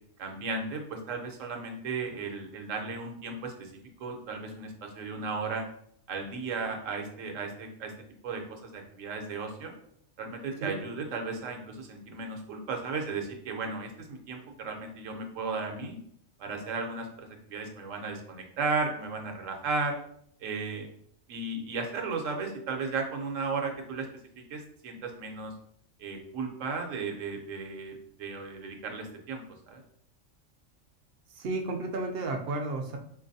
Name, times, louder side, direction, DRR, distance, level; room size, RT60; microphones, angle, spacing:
voice 1, 0.2-3.7 4.0-5.6 6.1-7.9 8.2-9.7 10.2-16.0 16.4-20.0 20.4-20.9 21.3-24.1 24.5-25.5 26.0-29.8, right 4 dB, 80° right, 3 dB, 1.0 m, -35 dB
voice 2, 31.4-33.0, right 3 dB, 65° right, 4 dB, 0.6 m, -32 dB
4.0 x 2.5 x 2.6 m, 0.67 s
omnidirectional pair, 1.3 m